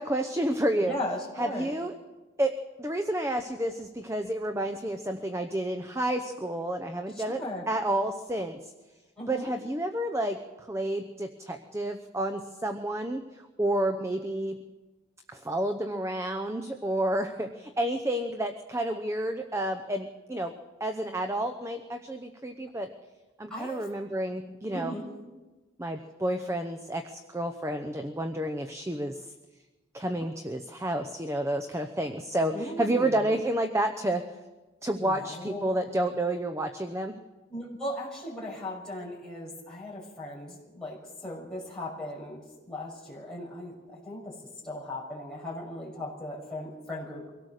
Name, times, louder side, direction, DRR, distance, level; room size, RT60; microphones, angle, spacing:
voice 1, 0.0-1.0 1.4-1.9 2.4-2.5 2.8-7.4 7.7-8.7 9.3-14.6 15.3-20.5 20.8-22.9 23.4-25.0 25.8-29.3 29.9-34.2 34.8-37.1, right 1 dB, 15° right, 5 dB, 0.8 m, -30 dB
voice 2, 0.8-1.7 7.1-7.6 9.2-9.5 23.5-23.8 24.7-25.1 32.5-33.2 35.0-35.6 37.5-41.0 41.2-42.4 42.7-44.3 44.6-47.3, left 1 dB, 5° left, -5 dB, 6.3 m, -37 dB
24.0 x 17.5 x 6.6 m, 1.2 s
head